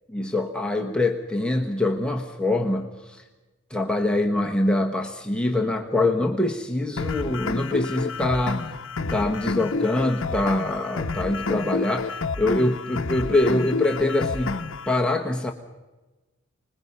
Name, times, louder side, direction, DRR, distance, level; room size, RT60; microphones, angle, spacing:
voice 1, 0.1-3.2 3.7-8.7 9.1-14.6 14.9-15.5, left 2 dB, 5° left, 2 dB, 1.2 m, -24 dB
sound 1, 7.0-15.0, left 3 dB, 65° left, 0.8 m, -29 dB
26.0 x 20.5 x 5.5 m, 1.1 s
head